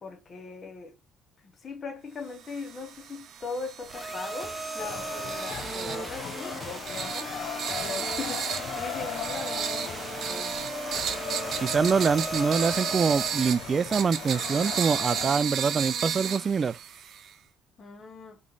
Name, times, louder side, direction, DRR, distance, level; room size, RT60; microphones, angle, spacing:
voice 1, 0.0-1.0 1.4-7.3 7.7-10.6 17.8-18.4, left 4 dB, 35° left, 1.0 m, -40 dB
sound 1, 2.4-17.3, right 8 dB, 55° right, 0.8 m, -34 dB
sound 2, 3.9-13.3, right 2 dB, 10° right, 0.9 m, -37 dB
sound 3, 4.8-15.3, left 8 dB, 60° left, 0.5 m, -38 dB
voice 2, 11.6-16.8, right 5 dB, 30° right, 0.3 m, -25 dB
5.1 x 3.1 x 2.3 m
cardioid pair, 110°, 0 cm